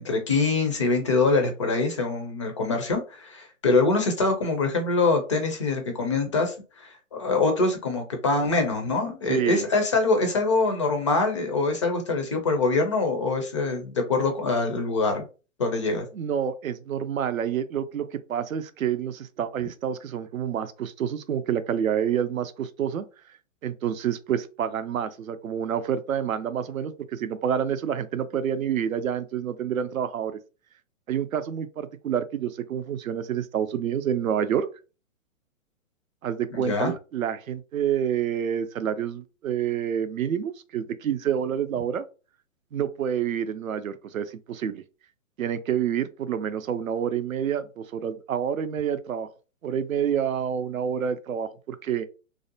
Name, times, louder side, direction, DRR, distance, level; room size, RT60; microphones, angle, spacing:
voice 1, 0.0-15.2 15.6-16.1 36.5-36.9, left 3 dB, 25° left, 0.4 m, -24 dB
voice 2, 9.3-9.6 16.1-23.0 23.6-30.4 31.1-34.7 36.2-42.0 42.7-44.8 45.4-49.3 49.6-52.1, right 9 dB, 85° right, 0.5 m, -28 dB
2.6 x 2.1 x 2.6 m
hypercardioid pair, 130°, 40 cm